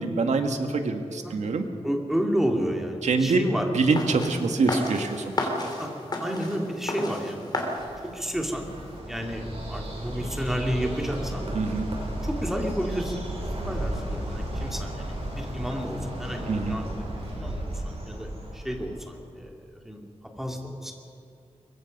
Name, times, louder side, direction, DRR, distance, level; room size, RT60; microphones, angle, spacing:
voice 1, 0.0-1.6 3.0-3.5 3.7-5.5 11.5-11.9 16.5-16.8, right 4 dB, 90° right, 6 dB, 1.8 m, -25 dB
voice 2, 1.8-3.7 5.8-5.9 6.2-7.7 8.0-8.6 9.1-11.5 12.2-17.0 17.3-19.6 19.8-20.0 20.4-20.9, equal, 5° right, 1 dB, 2.6 m, -31 dB
sound 1, 4.0-9.0, left 2 dB, 35° left, 3.4 m, -33 dB
Bird, 7.8-19.2, right 1 dB, 60° right, 6.8 m, -34 dB
23.5 x 23.0 x 5.4 m, 2.6 s
wide cardioid pair, 150°, 12 cm